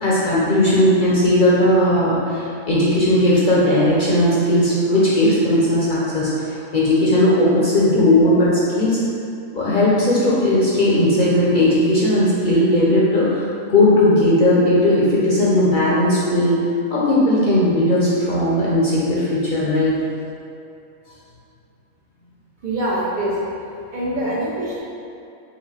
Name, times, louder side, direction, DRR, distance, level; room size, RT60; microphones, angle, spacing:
voice 1, 0.0-9.0 9.5-16.6 16.9-20.0 24.0-24.3, left 1 dB, 45° left, -8 dB, 0.7 m, -17 dB
voice 2, 22.6-23.4 23.9-24.8, right 1 dB, 75° right, -6 dB, 0.4 m, -24 dB
4.7 x 2.7 x 3.3 m, 2.6 s
omnidirectional pair, 1.5 m